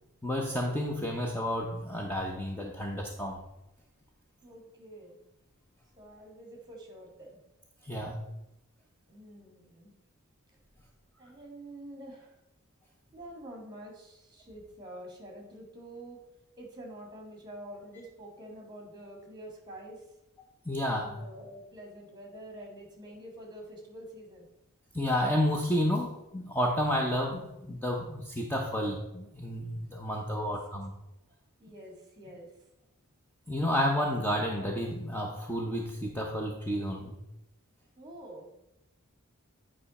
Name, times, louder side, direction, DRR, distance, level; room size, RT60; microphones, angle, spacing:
voice 1, 0.2-3.4 7.8-8.2 20.7-21.2 24.9-30.9 33.5-37.2, equal, 10° left, 0 dB, 0.7 m, -31 dB
voice 2, 4.4-5.2 6.0-7.4 9.1-9.9 11.2-12.4 13.1-16.2 16.6-20.0 20.9-24.5 30.3-30.6 31.6-32.5 38.0-38.5, right 1 dB, 20° right, 1 dB, 2.0 m, -47 dB
9.3 x 5.0 x 4.2 m, 0.91 s
head